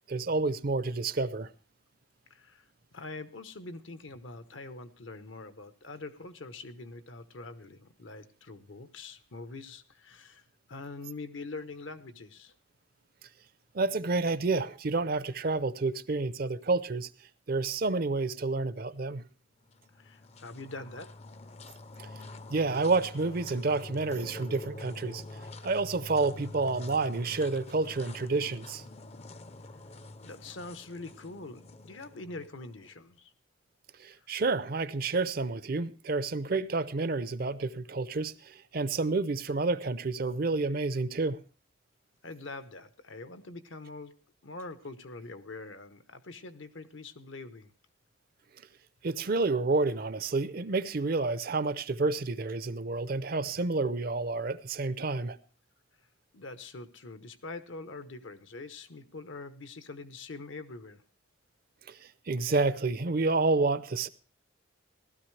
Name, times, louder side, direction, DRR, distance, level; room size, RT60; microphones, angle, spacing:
voice 1, 0.1-1.5 13.7-17.1 17.5-19.2 22.5-25.2 25.6-28.8 34.0-41.4 49.0-55.4 61.9-64.1, right 3 dB, 50° right, 0.6 m, -29 dB
voice 2, 2.3-2.7 2.9-10.4 10.7-12.5 20.0-21.1 30.2-33.3 42.2-44.2 44.4-47.7 56.3-61.0, left 3 dB, 70° left, 1.0 m, -44 dB
sound 1, 19.6-32.9, left 2 dB, 30° left, 0.6 m, -46 dB
16.0 x 12.5 x 3.2 m
head